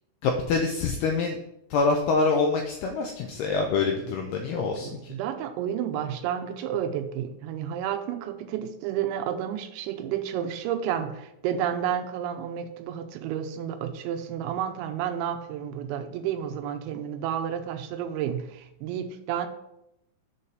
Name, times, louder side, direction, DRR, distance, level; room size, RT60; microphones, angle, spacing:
voice 1, 0.2-1.4 1.7-4.9, left 4 dB, 85° left, 2 dB, 2.3 m, -25 dB
voice 2, 4.8-19.5, right 9 dB, 85° right, 8 dB, 2.8 m, -31 dB
7.2 x 4.2 x 6.6 m, 0.82 s
omnidirectional pair, 5.4 m